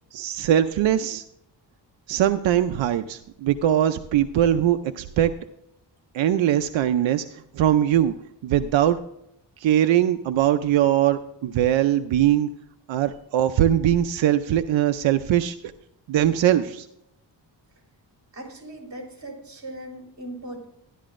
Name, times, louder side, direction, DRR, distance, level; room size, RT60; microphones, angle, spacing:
voice 1, 0.1-1.2 2.1-5.3 6.1-8.1 8.4-9.0 9.6-12.5 12.9-15.6 16.1-16.9, right 11 dB, 90° right, 9 dB, 0.6 m, -21 dB
voice 2, 18.3-20.6, right 1 dB, 40° right, 0 dB, 3.5 m, -38 dB
13.5 x 11.0 x 2.5 m, 0.79 s
wide cardioid pair, 165°, 44 cm